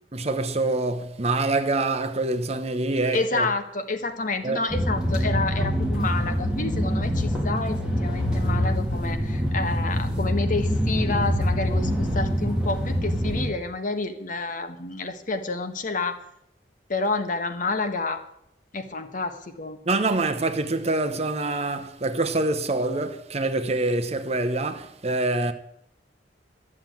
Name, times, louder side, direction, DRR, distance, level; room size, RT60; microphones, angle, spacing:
voice 1, 0.1-3.5 4.4-4.6 19.9-25.5, right 2 dB, 35° right, 0.9 m, -25 dB
voice 2, 3.1-16.2 16.9-18.2 18.7-19.8, left 3 dB, 45° left, 1.3 m, -29 dB
sound 1, 4.7-13.5, equal, 5° right, 3.1 m, -25 dB
12.5 x 7.3 x 9.2 m
head